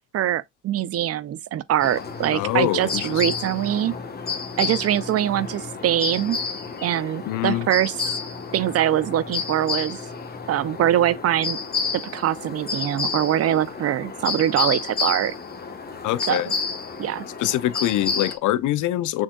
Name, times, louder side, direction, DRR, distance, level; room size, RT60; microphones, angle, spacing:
voice 1, 0.0-3.9 4.6-6.4 6.8-7.9 8.5-10.0 10.5-11.6 11.9-15.3 16.3-16.4 17.0-17.2, right 11 dB, 55° right, 0.5 m, -23 dB
sound 1, 1.8-18.4, left 5 dB, 30° left, 1.1 m, -30 dB
voice 2, 2.3-3.3 7.3-7.7 16.0-16.5 17.4-19.2, left 14 dB, 85° left, 0.6 m, -24 dB
6.4 x 3.6 x 2.2 m
cardioid pair, 90°, 30 cm